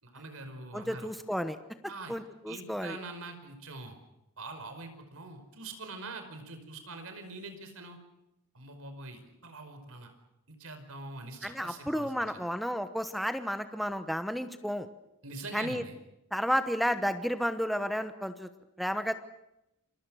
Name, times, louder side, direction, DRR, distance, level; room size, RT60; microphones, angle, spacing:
voice 1, 0.0-1.1 1.8-2.2 2.5-4.0 4.4-8.0 8.5-10.1 10.5-12.2 15.2-15.9, right 2 dB, 65° right, 7 dB, 5.1 m, -44 dB
voice 2, 0.7-1.6 2.1-3.0 11.4-14.9 15.5-15.8 16.3-18.5 18.8-19.1, equal, ahead, 9 dB, 1.0 m, -32 dB
28.0 x 24.0 x 6.4 m, 0.85 s
head